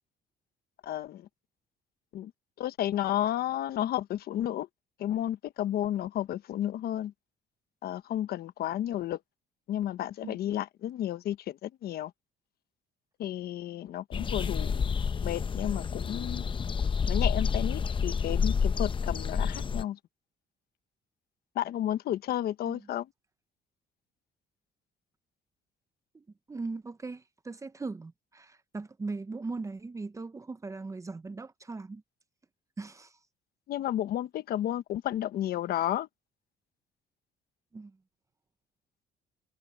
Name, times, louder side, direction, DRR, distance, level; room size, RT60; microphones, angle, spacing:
voice 1, 0.8-1.3 2.1-2.3 2.6-4.7 5.0-7.1 7.8-9.2 9.7-12.1 13.2-14.8 15.2-16.5 17.1-20.0 21.5-23.1 33.7-36.1, left 12 dB, 65° left, 1.2 m, -32 dB
sound 1, 14.1-19.8, left 6 dB, 30° left, 0.8 m, -29 dB
voice 2, 26.1-32.0 32.8-33.1 37.7-38.0, right 3 dB, 20° right, 0.8 m, -39 dB
cardioid pair, 110°, 17 cm